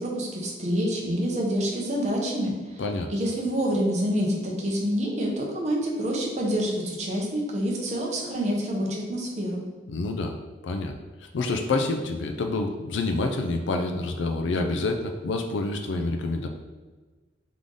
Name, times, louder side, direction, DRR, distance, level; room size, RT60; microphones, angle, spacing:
voice 1, 0.0-2.8 3.1-9.6, equal, 40° right, -2 dB, 0.9 m, -27 dB
voice 2, 9.9-10.4 10.6-10.9 11.2-16.5, left 3 dB, 85° left, 4 dB, 0.4 m, -27 dB
3.7 x 3.5 x 3.7 m, 1.3 s
head